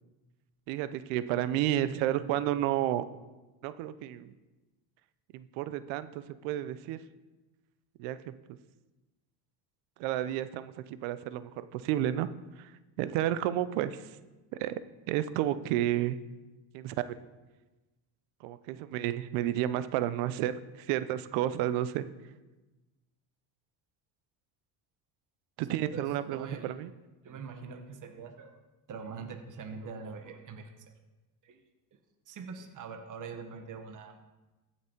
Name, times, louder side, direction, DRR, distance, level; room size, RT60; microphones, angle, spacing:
voice 1, 0.7-3.0 3.6-4.3 5.3-7.0 8.0-8.2 10.0-10.7 11.0-12.3 13.0-14.0 14.6-14.7 15.1-16.2 16.7-17.2 18.4-22.0 25.6-26.9, right 12 dB, 85° right, 14 dB, 0.7 m, -31 dB
voice 2, 25.7-26.7 27.2-28.6 28.9-30.7 31.4-31.6 32.3-34.2, right 5 dB, 45° right, 5 dB, 1.3 m, -43 dB
14.5 x 6.1 x 4.5 m, 1.1 s
cardioid pair, 105°, 45 cm